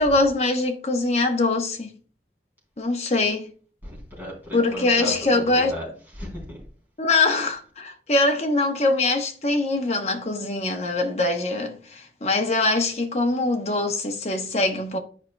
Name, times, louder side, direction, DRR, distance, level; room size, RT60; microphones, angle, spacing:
voice 1, 0.0-1.9 2.8-3.5 4.5-5.7 7.0-15.0, left 2 dB, 35° left, 1.0 m, -23 dB
voice 2, 3.8-6.6, left 1 dB, 10° right, 3.6 m, -36 dB
10.5 x 5.1 x 2.3 m
head